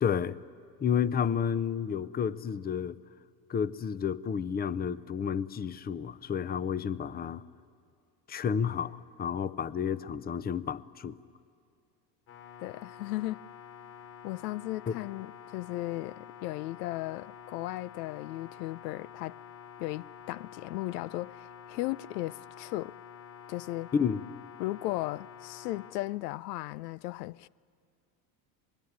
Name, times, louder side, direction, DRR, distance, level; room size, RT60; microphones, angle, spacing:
voice 1, 0.0-0.4 0.8-3.0 3.5-7.4 8.3-11.2 14.9-15.0 23.9-24.2, left 7 dB, 20° left, 0.6 m, -31 dB
sound 1, 12.3-25.9, left 8 dB, 50° left, 5.8 m, -49 dB
voice 2, 12.6-13.4 14.2-19.4 19.8-23.0 23.5-23.9 24.6-27.5, left 18 dB, 80° left, 0.5 m, -36 dB
25.0 x 20.5 x 9.6 m
supercardioid pair, 95°, 48 cm